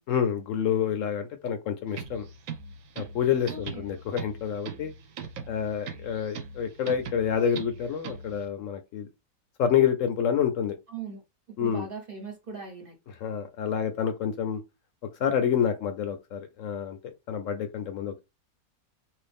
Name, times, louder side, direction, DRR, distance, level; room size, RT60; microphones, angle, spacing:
voice 1, 0.1-2.3 3.0-4.9 5.5-9.1 9.6-10.8 11.6-11.9 13.2-14.6 15.2-17.0 17.3-18.2, left 8 dB, 70° left, 0.8 m, -28 dB
sound 1, 1.9-8.4, right 5 dB, 70° right, 1.0 m, -41 dB
voice 2, 3.5-3.9 10.9-11.2 11.5-13.0, right 5 dB, 45° right, 0.9 m, -40 dB
3.0 x 2.7 x 3.4 m
omnidirectional pair, 1.6 m